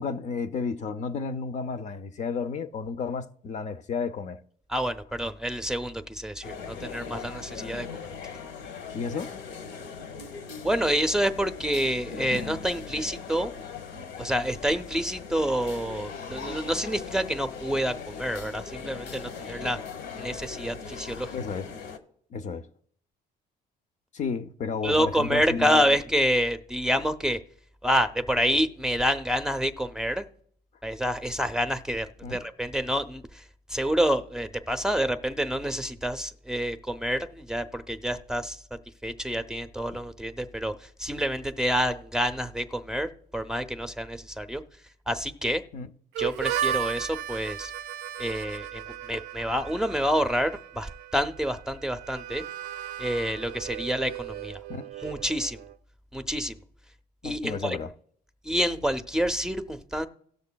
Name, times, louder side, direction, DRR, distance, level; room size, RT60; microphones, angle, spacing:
voice 1, 0.0-4.4 8.9-9.3 21.3-21.7 22.3-22.7 24.1-25.7 32.2-32.4 39.9-40.0 45.7-45.9 54.7-54.9 57.2-57.9, left 5 dB, 45° left, 0.6 m, -32 dB
voice 2, 4.7-7.9 10.6-13.5 14.2-19.8 20.2-21.3 24.8-27.4 27.8-30.2 30.8-33.4 33.7-38.6 39.0-44.6 45.1-45.6 46.2-47.7 48.2-52.5 53.0-54.6 55.0-55.6 56.1-56.5 57.2-57.8 58.4-60.1, equal, 5° right, 0.6 m, -28 dB
sound 1, 6.4-22.0, left 5 dB, 85° left, 1.2 m, -40 dB
Harmonica, 46.1-55.8, right 10 dB, 85° right, 0.4 m, -36 dB
18.0 x 6.6 x 2.2 m
cardioid pair, 110°, 17 cm